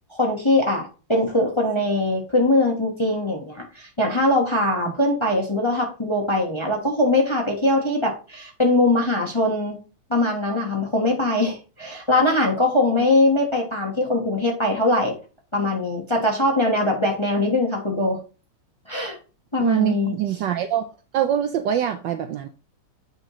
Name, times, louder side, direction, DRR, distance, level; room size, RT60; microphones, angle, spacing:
voice 1, 0.1-9.8 10.1-15.1 15.5-18.2 18.9-19.2 19.5-20.1, left 1 dB, 15° left, 1.0 m, -21 dB
voice 2, 19.6-20.9 21.1-22.5, right 10 dB, 70° right, 1.1 m, -23 dB
8.3 x 5.6 x 3.0 m
omnidirectional pair, 2.4 m